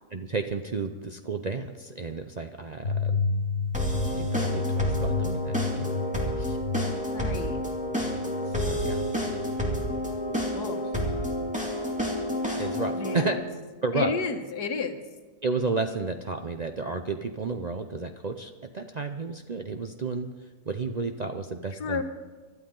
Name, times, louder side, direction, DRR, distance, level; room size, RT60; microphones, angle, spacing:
voice 1, 0.1-3.3 4.1-5.9 6.4-6.6 8.5-9.1 12.6-13.4 13.8-14.1 15.4-20.3 20.7-22.0, right 4 dB, 70° right, 6 dB, 0.4 m, -32 dB
sound 1, 2.8-9.6, left 4 dB, 45° left, 1.3 m, -31 dB
sound 2, 3.7-13.3, equal, 5° right, 2.3 m, -30 dB
voice 2, 7.1-7.6 10.5-10.8 12.9-13.2 13.9-15.0 21.8-22.0, left 4 dB, 80° left, 7 dB, 1.7 m, -31 dB
24.5 x 12.5 x 3.9 m, 1.3 s
omnidirectional pair, 1.7 m